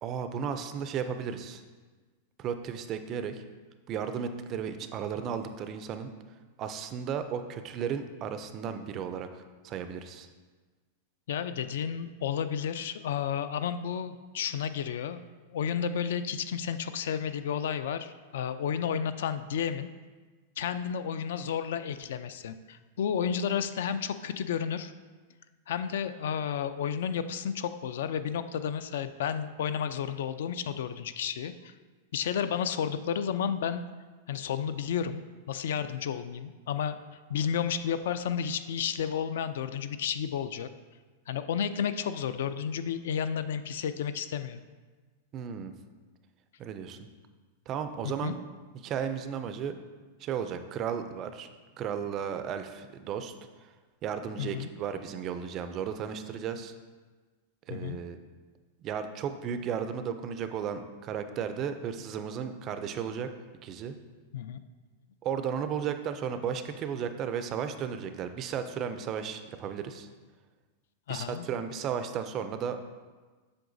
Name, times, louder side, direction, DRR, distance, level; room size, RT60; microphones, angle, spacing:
voice 1, 0.0-1.6 2.4-3.4 3.9-6.1 6.6-10.3 45.3-45.7 46.6-47.0 47.7-48.4 48.8-49.8 50.2-51.5 51.8-53.3 53.6-53.7 54.0-56.7 57.7-58.2 58.8-63.3 63.6-63.9 65.2-70.1 71.1-72.8, right 7 dB, 25° right, 9 dB, 0.3 m, -34 dB
voice 2, 11.3-15.2 15.5-19.9 20.6-24.9 25.7-31.7 32.1-33.9 34.3-35.2 35.5-37.0 37.3-40.7 41.3-44.6 48.0-48.3 54.4-54.7 57.7-58.0 64.3-64.6 71.1-71.5, left 8 dB, 70° left, 11 dB, 0.3 m, -32 dB
7.7 x 6.3 x 2.6 m, 1.3 s
supercardioid pair, 170°, 0 cm